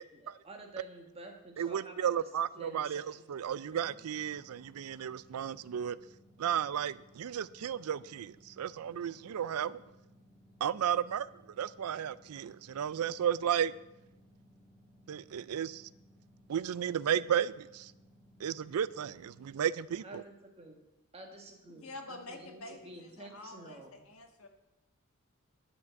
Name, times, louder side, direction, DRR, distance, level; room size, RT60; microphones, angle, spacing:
voice 1, 0.1-4.0 20.0-20.8 21.1-24.1, right 1 dB, 30° right, 2 dB, 1.8 m, -50 dB
voice 2, 1.6-3.0 3.3-6.0 6.4-9.8 10.6-11.3 11.6-13.7 15.1-15.9 16.5-17.9 18.4-20.2, right 9 dB, 90° right, 18 dB, 0.4 m, -33 dB
sound 1, 3.5-19.5, equal, 5° right, 2.6 m, -62 dB
voice 3, 21.8-24.5, left 2 dB, 70° left, 4 dB, 1.6 m, -47 dB
10.5 x 6.0 x 7.7 m, 0.91 s
head